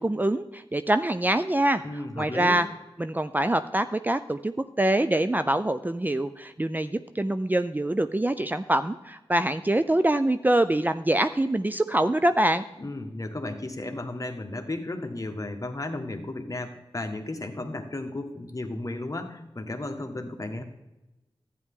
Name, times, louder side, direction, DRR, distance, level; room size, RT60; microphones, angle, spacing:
voice 1, 0.0-2.7 3.0-12.6, right 1 dB, 20° right, 11 dB, 0.5 m, -25 dB
voice 2, 1.8-2.6 12.8-20.6, left 2 dB, 35° left, 5 dB, 1.5 m, -34 dB
12.0 x 9.4 x 3.8 m, 1.0 s
cardioid pair, 40°, 10 cm